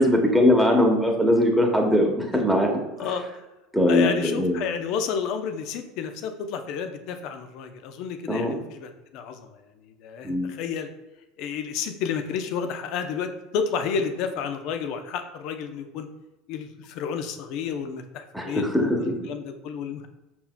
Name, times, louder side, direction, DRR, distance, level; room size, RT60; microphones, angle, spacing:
voice 1, 0.0-3.1 3.7-4.7 8.3-8.6 10.2-10.5 18.3-19.0, left 1 dB, ahead, 1 dB, 1.0 m, -21 dB
voice 2, 3.9-10.9 11.4-16.1 16.5-20.1, left 6 dB, 60° left, 7 dB, 0.6 m, -31 dB
5.6 x 4.3 x 2.2 m, 1.0 s
hypercardioid pair, 90°, 0 cm